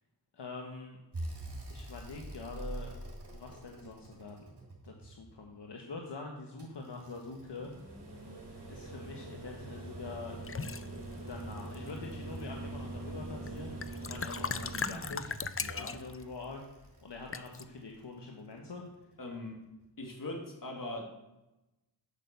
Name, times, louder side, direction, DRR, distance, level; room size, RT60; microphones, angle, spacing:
voice 1, 0.3-1.0 1.7-2.9 3.3-4.5 4.8-7.7 8.7-10.4 11.3-13.8 14.1-15.4 15.8-18.8, left 3 dB, 75° left, 1 dB, 1.4 m, -45 dB
sound 1, 1.1-5.3 6.6-17.8 19.3-19.4, right 2 dB, 65° right, 3.8 m, -44 dB
sound 2, 10.5-10.9 11.6-12.1 13.5-13.6 13.8-16.2 17.3-17.6, left 5 dB, 35° left, 0.5 m, -37 dB
voice 2, 15.6-16.0 19.2-19.6 20.0-21.0, left 2 dB, 50° left, 1 dB, 2.6 m, -41 dB
10.0 x 6.7 x 6.8 m, 0.99 s
wide cardioid pair, 75°, 42 cm